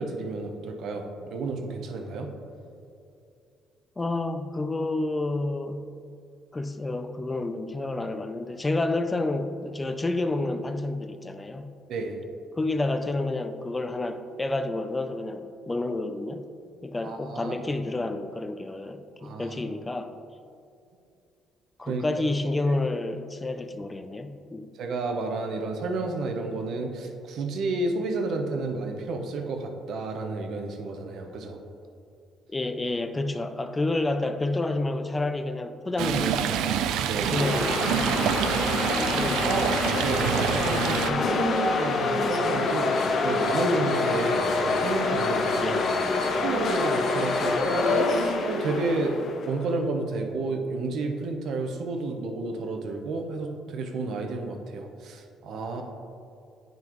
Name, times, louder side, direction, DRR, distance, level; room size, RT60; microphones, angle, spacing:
voice 1, 0.0-2.3 11.9-12.2 17.0-17.6 19.2-19.6 21.9-22.0 22.6-22.8 24.7-31.6 37.1-37.4 39.4-42.9 43.2-45.8 46.2-49.2 49.4-55.8, right 3 dB, 65° right, 4 dB, 0.9 m, -31 dB
voice 2, 4.0-5.9 6.5-11.7 12.6-16.4 16.8-20.1 21.8-24.7 32.5-36.9 37.3-39.5 45.6-45.8, left 2 dB, 15° left, 9 dB, 0.4 m, -30 dB
Stream, 36.0-41.1, right 9 dB, 90° right, 0.4 m, -27 dB
sound 1, 37.3-49.6, left 3 dB, 50° left, 0.7 m, -26 dB
9.8 x 5.3 x 3.1 m, 2.5 s
cardioid pair, 125°, 0 cm